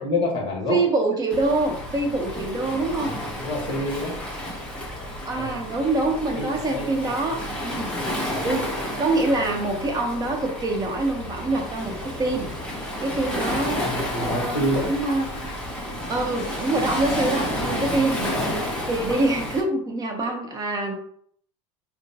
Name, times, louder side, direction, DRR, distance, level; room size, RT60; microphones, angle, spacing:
voice 1, 0.0-0.8 3.0-3.1 3.4-4.2 5.3-5.5 6.4-6.9 8.2-8.5 13.8-14.9, left 1 dB, 35° left, 0 dB, 1.3 m, -27 dB
voice 2, 0.7-3.1 5.3-7.9 8.4-12.5 13.0-13.8 14.2-15.5 16.1-20.9, right 2 dB, 25° right, 2 dB, 0.9 m, -25 dB
Waves surf, 1.3-19.6, equal, 5° left, 1.1 m, -31 dB
4.9 x 2.1 x 2.8 m, 0.63 s
supercardioid pair, 120°, 15 cm